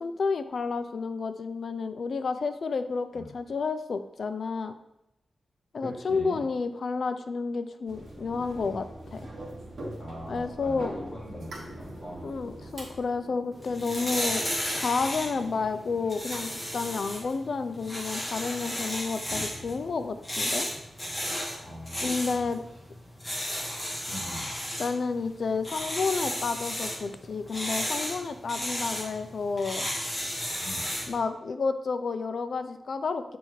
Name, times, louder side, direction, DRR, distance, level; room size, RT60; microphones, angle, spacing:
voice 1, 0.0-4.7 5.7-8.9 9.1-9.3 10.3-10.9 12.2-14.4 14.7-20.7 22.0-22.6 24.8-29.9 31.1-33.4, left 4 dB, 55° left, 10 dB, 0.4 m, -30 dB
voice 2, 5.8-6.4 10.0-10.8 11.1-12.2 21.6-22.5 24.1-24.5 30.6-30.9, equal, 25° left, -6 dB, 1.8 m, -41 dB
sound 1, 7.9-13.0, right 1 dB, 60° right, 1.6 m, -42 dB
sound 2, 11.4-17.0, right 2 dB, 85° right, 1.4 m, -48 dB
sound 3, 13.5-31.2, equal, 10° left, 1.4 m, -34 dB
7.1 x 3.4 x 4.6 m, 0.87 s
wide cardioid pair, 180°, 0 cm